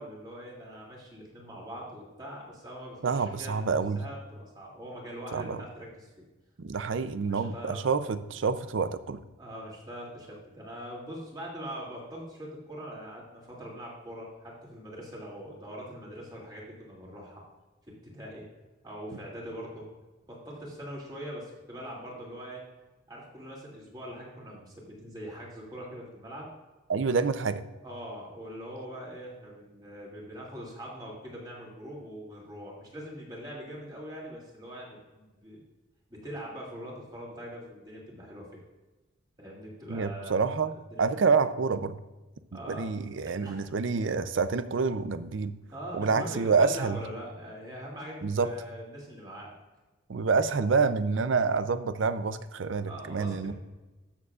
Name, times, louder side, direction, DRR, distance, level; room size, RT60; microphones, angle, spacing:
voice 1, 0.0-6.1 7.2-7.8 9.4-17.4 18.0-18.5 18.8-19.9 20.3-22.6 23.1-26.5 27.8-35.6 36.1-38.5 39.4-40.5 40.9-41.1 42.5-42.9 43.3-43.7 45.7-49.5 52.9-53.5, equal, 20° right, -4 dB, 2.5 m, -42 dB
voice 2, 3.0-4.0 5.3-5.6 6.6-9.2 26.9-27.6 39.9-40.7 41.0-42.0 42.7-45.6 45.9-47.0 48.2-48.5 50.1-53.5, right 4 dB, 65° right, 12 dB, 0.5 m, -27 dB
13.0 x 7.0 x 2.4 m, 1.1 s
head